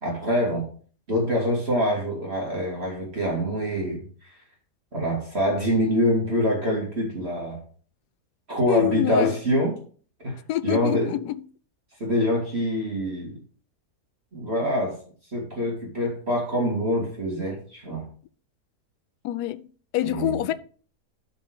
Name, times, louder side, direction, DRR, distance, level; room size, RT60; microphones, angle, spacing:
voice 1, 0.0-0.7 1.1-4.0 4.9-7.6 8.5-9.8 10.2-11.2 12.0-13.4 14.3-15.0 15.3-18.1 20.0-20.3, equal, 40° right, 2.4 m, -25 dB
voice 2, 8.7-9.3 10.5-11.4 19.2-19.7 19.9-20.5, left 13 dB, 80° left, 1.1 m, -26 dB
12.0 x 4.3 x 4.7 m
omnidirectional pair, 1.7 m